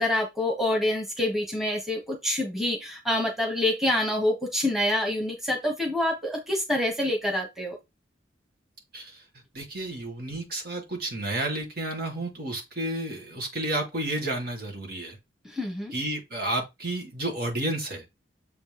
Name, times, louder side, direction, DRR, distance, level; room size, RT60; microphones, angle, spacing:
voice 1, 0.0-7.8 15.4-15.9, left 1 dB, ahead, 1.5 m, -26 dB
voice 2, 8.9-9.2 9.5-15.2 15.9-18.0, right 1 dB, 50° right, 2.1 m, -31 dB
7.1 x 4.3 x 3.5 m
head